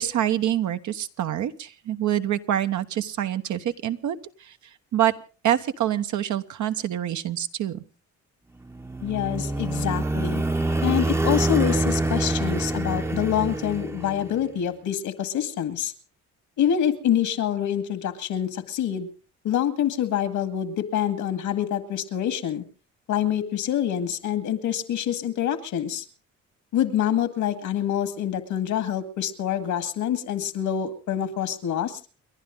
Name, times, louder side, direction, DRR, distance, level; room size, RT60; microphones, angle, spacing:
voice 1, 0.0-4.6 4.9-5.1 5.4-7.8, right 11 dB, 75° right, 8 dB, 1.2 m, -26 dB
sound 1, 8.7-14.4, right 2 dB, 10° right, 0.8 m, -26 dB
voice 2, 9.0-10.4 10.8-15.9 16.6-19.1 19.4-22.6 23.1-26.0 26.7-32.0, left 10 dB, 80° left, 10 dB, 2.1 m, -26 dB
29.5 x 11.5 x 3.8 m, 0.37 s
cardioid pair, 90°, 30 cm